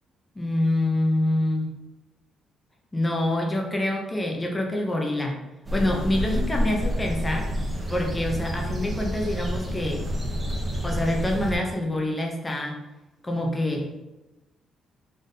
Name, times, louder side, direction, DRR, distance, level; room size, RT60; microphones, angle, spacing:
voice 1, 0.3-1.7 2.9-5.4 5.7-7.5 7.9-10.0 10.8-12.7 13.2-14.0, left 1 dB, 20° left, 1 dB, 0.8 m, -26 dB
sound 1, 5.6-11.6, equal, 25° right, 0.9 m, -29 dB
3.7 x 2.6 x 4.0 m, 1.0 s
cardioid pair, 90°, 0 cm